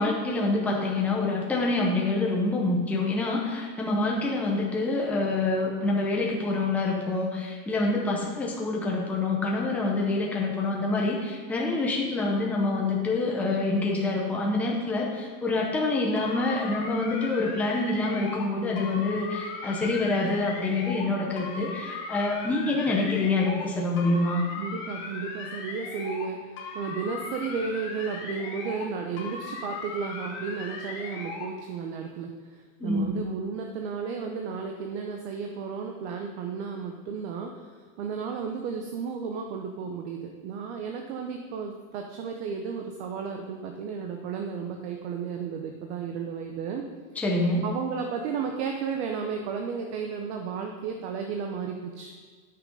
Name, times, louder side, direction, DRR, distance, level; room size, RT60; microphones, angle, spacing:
voice 1, 0.0-24.4 32.8-33.1 47.2-47.6, left 2 dB, 5° left, -2 dB, 0.7 m, -26 dB
sound 1, 16.2-18.5 18.8-21.1 21.4-23.7 24.0-26.3 26.6-28.9 29.2-31.5, left 4 dB, 30° left, 1.2 m, -38 dB
voice 2, 24.6-32.3 32.8-37.7 38.0-46.8 47.6-52.1, right 6 dB, 55° right, 3 dB, 0.9 m, -33 dB
9.4 x 5.9 x 5.4 m, 1.5 s
supercardioid pair, 175°, 41 cm